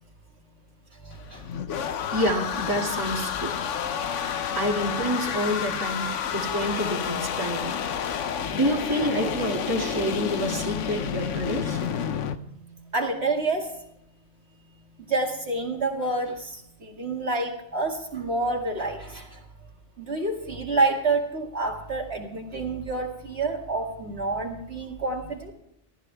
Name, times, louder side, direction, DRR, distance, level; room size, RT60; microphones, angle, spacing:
voice 1, 1.0-1.4 12.3-12.6 12.9-13.7 15.1-19.4 20.0-25.5, right 3 dB, 60° right, 0 dB, 2.5 m, -28 dB
sound 1, 1.1-12.4, left 7 dB, 85° left, 1.2 m, -30 dB
voice 2, 2.1-3.5 4.5-7.8 8.5-11.8, equal, 15° right, -1 dB, 2.4 m, -28 dB
20.0 x 14.0 x 3.4 m, 0.74 s
omnidirectional pair, 1.2 m